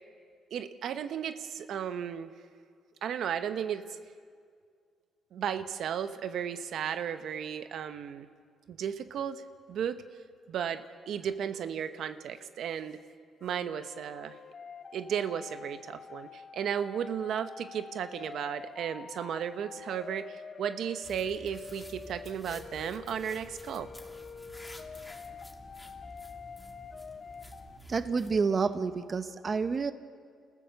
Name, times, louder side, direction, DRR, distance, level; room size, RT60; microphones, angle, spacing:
voice 1, 0.5-2.3 3.0-4.0 5.3-8.3 8.7-9.4 9.7-10.0 10.5-13.0 13.4-14.4 14.9-23.9, right 8 dB, 70° right, 10 dB, 0.9 m, -34 dB
sound 1, 13.4-27.8, left 5 dB, 45° left, 0.8 m, -47 dB
sound 2, 21.0-28.5, left 1 dB, 10° left, 2.0 m, -50 dB
voice 2, 27.9-29.9, right 5 dB, 40° right, 11 dB, 0.8 m, -29 dB
29.0 x 15.0 x 6.6 m, 2.1 s
cardioid pair, 90°, 0 cm